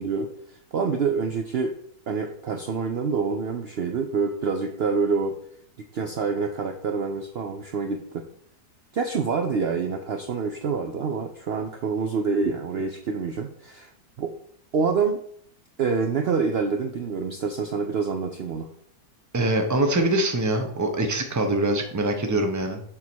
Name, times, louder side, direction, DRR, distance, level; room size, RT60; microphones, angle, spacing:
voice 1, 0.0-1.8 2.1-5.4 5.8-8.2 8.9-13.9 14.2-14.3 14.7-15.2 15.8-18.7, right 5 dB, 70° right, 4 dB, 0.6 m, -27 dB
voice 2, 19.3-22.8, right 1 dB, 15° right, 4 dB, 0.6 m, -24 dB
7.1 x 3.7 x 6.2 m, 0.65 s
omnidirectional pair, 1.8 m